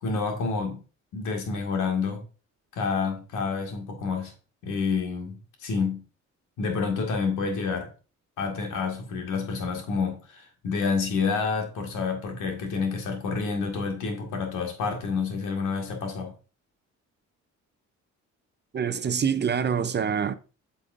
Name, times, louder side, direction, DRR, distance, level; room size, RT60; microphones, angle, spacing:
voice 1, 0.0-0.8 1.1-2.2 2.7-4.3 4.6-6.0 6.6-7.9 8.4-16.3, left 5 dB, 85° left, 2.1 m, -28 dB
voice 2, 18.7-20.3, right 7 dB, 35° right, 0.6 m, -25 dB
8.4 x 5.5 x 2.6 m
cardioid pair, 90°, 30 cm